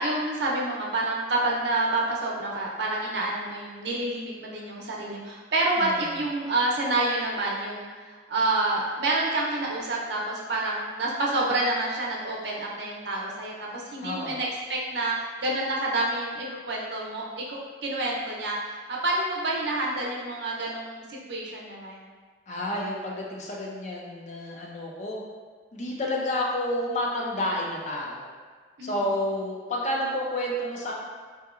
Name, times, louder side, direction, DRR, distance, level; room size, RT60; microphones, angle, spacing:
voice 1, 0.0-22.0 28.8-28.9, right 2 dB, 65° right, -3 dB, 0.6 m, -28 dB
voice 2, 14.0-14.4 22.5-25.2 25.7-28.3 28.8-30.9, left 1 dB, 40° left, -2 dB, 0.5 m, -30 dB
3.7 x 2.8 x 2.4 m, 1.5 s
head